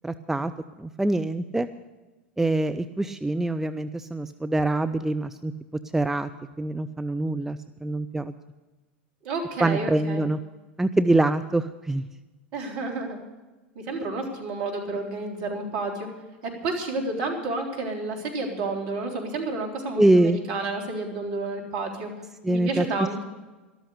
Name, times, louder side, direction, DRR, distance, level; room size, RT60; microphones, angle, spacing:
voice 1, 0.0-0.5 0.8-1.7 2.4-5.5 5.9-6.3 6.6-8.3 9.6-10.4 10.8-12.0 20.0-20.4 22.4-22.8, right 2 dB, 5° right, 11 dB, 0.5 m, -24 dB
voice 2, 9.2-10.2 12.5-13.2 13.8-16.1 16.4-22.1 22.5-23.2, right 3 dB, 50° right, 1 dB, 3.7 m, -30 dB
13.0 x 12.5 x 6.5 m, 1.2 s
figure-of-eight pair, 90°, 6 cm